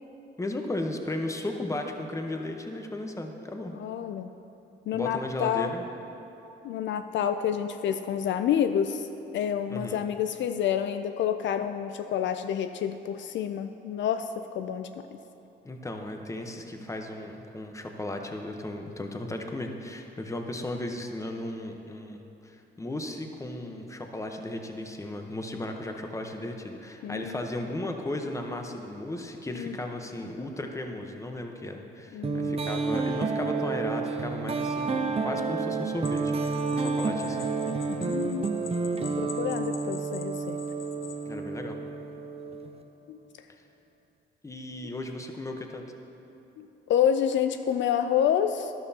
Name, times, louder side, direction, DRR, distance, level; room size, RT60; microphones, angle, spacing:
voice 1, 0.4-3.8 4.9-5.8 9.7-10.0 15.6-37.6 41.3-41.8 44.4-45.8, left 1 dB, 15° left, 3 dB, 0.9 m, -35 dB
voice 2, 3.7-4.3 4.9-5.7 6.6-9.1 9.3-14.9 27.0-27.4 29.6-29.8 32.1-32.5 38.0-38.5 39.0-40.6 43.1-43.2 46.6-48.7, left 9 dB, 70° left, 8 dB, 0.4 m, -28 dB
sound 1, 32.2-42.8, right 4 dB, 30° right, 0.6 m, -30 dB
sound 2, 36.0-41.3, left 9 dB, 85° left, 0.8 m, -46 dB
12.5 x 11.5 x 2.8 m, 3.0 s
cardioid pair, 90°, 20 cm